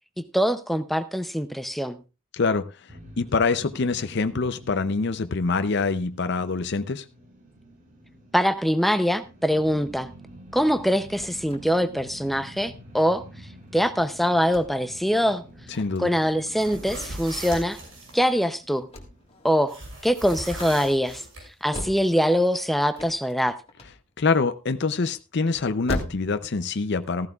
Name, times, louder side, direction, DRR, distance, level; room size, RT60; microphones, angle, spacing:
voice 1, 0.3-2.0 8.3-10.1 10.5-13.2 13.7-15.4 16.0-17.8 18.1-18.9 19.4-21.2 21.6-23.5, equal, ahead, 10 dB, 0.6 m, -23 dB
voice 2, 2.3-2.7 3.2-7.0 15.8-16.1 24.2-27.3, left 4 dB, 55° left, 10 dB, 0.6 m, -25 dB
sound 1, 2.9-20.1, equal, 40° right, 2.1 m, -48 dB
sound 2, 9.7-26.5, left 1 dB, 30° left, 1.7 m, -40 dB
sound 3, 16.5-18.1 19.7-21.4, right 2 dB, 65° right, 5.9 m, -38 dB
14.5 x 14.0 x 2.4 m, 0.28 s
head